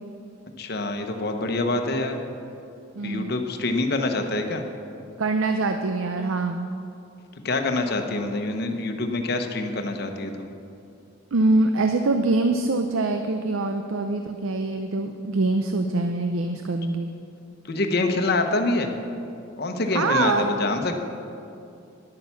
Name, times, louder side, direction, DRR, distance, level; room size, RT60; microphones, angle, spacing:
voice 1, 0.6-2.2 3.0-4.6 7.4-10.5 17.6-18.9 19.6-21.0, left 2 dB, 50° left, 5 dB, 0.9 m, -26 dB
voice 2, 3.0-3.3 5.2-6.7 11.3-17.1 19.9-20.5, right 2 dB, 75° right, 6 dB, 0.6 m, -24 dB
11.0 x 8.9 x 7.0 m, 2.6 s
head